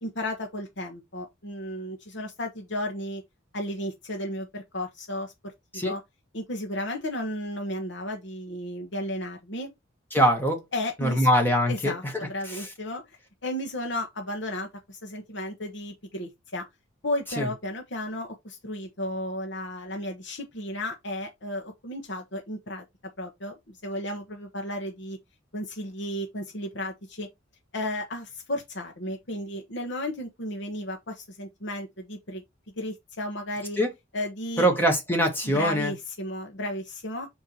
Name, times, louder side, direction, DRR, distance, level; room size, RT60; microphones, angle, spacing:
voice 1, 0.0-3.2 3.5-6.0 6.3-9.7 10.7-11.3 11.7-13.2 13.4-16.6 17.0-22.8 23.2-25.2 25.5-27.3 27.7-32.4 32.8-33.8 34.1-34.8 35.5-37.3, left 1 dB, 60° left, 1.2 m, -34 dB
voice 2, 10.1-10.6 11.0-11.9 12.5-12.7 17.4-17.5 33.8-33.9 34.6-35.9, equal, 10° left, 1.7 m, -23 dB
5.1 x 4.6 x 4.3 m
head